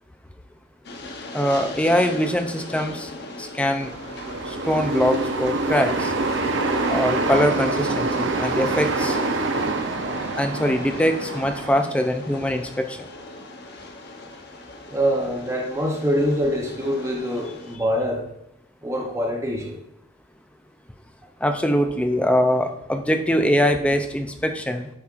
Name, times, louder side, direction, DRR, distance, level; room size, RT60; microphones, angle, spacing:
Train, 0.8-17.8, left 2 dB, 55° left, 0.8 m, -39 dB
voice 1, 1.3-3.1 3.4-3.9 4.5-6.1 6.9-9.2 10.4-13.0 21.4-24.9, equal, 5° left, 6 dB, 0.4 m, -22 dB
sound 1, 3.8-11.7, right 3 dB, 65° right, 0.7 m, -25 dB
voice 2, 14.9-18.3 18.8-19.8, equal, 15° right, 0 dB, 0.8 m, -24 dB
9.5 x 4.4 x 2.5 m, 0.82 s
head